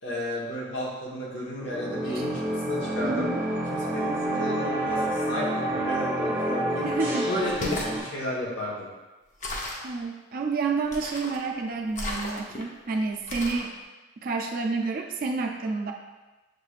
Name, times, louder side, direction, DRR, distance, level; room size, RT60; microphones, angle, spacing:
voice 1, 0.0-3.3 3.7-6.9 7.3-8.9, equal, 65° left, -4 dB, 1.2 m, -33 dB
sound 1, 1.6-8.0, right 1 dB, 10° right, 0.9 m, -28 dB
voice 2, 3.0-3.4 6.8-7.3 9.8-13.8 14.2-15.9, right 4 dB, 45° right, 3 dB, 0.3 m, -29 dB
sound 2, 7.4-8.0 9.4-9.9 10.9-11.4 11.9-12.6 13.3-13.7, left 2 dB, 40° left, 0.6 m, -33 dB
6.5 x 3.2 x 2.4 m, 1.2 s
head